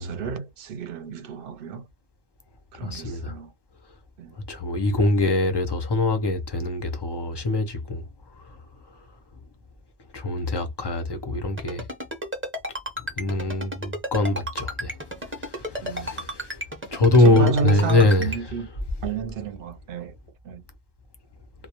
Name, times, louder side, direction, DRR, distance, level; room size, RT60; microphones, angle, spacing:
voice 1, 0.0-1.9 2.7-3.5 4.2-4.3 15.8-16.1 17.0-18.7 19.0-20.1 20.4-20.6, right 5 dB, 65° right, 0.7 m, -31 dB
voice 2, 2.8-3.3 4.5-8.0 10.1-11.8 13.2-15.0 15.4-16.6 16.9-18.3, left 2 dB, 40° left, 0.4 m, -23 dB
Ringtone, 11.6-18.4, equal, 15° right, 0.6 m, -31 dB
2.2 x 2.1 x 2.8 m
omnidirectional pair, 1.1 m